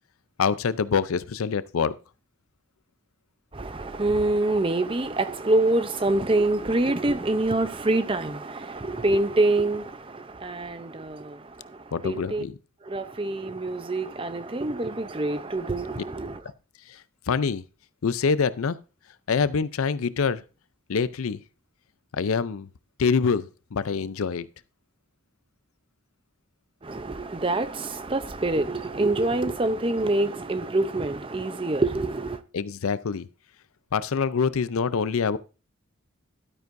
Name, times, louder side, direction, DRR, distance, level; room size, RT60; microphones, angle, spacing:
voice 1, 0.4-1.9 11.9-12.6 16.9-17.0 17.3-17.6 18.0-18.8 19.3-20.4 20.9-21.4 22.1-22.7 23.0-24.5 32.5-33.3 33.9-35.4, left 5 dB, 80° left, 0.5 m, -25 dB
voice 2, 3.5-11.4 12.0-12.4 12.9-16.4 26.8-32.4, right 2 dB, 25° right, 0.5 m, -26 dB
12.0 x 9.2 x 2.6 m
head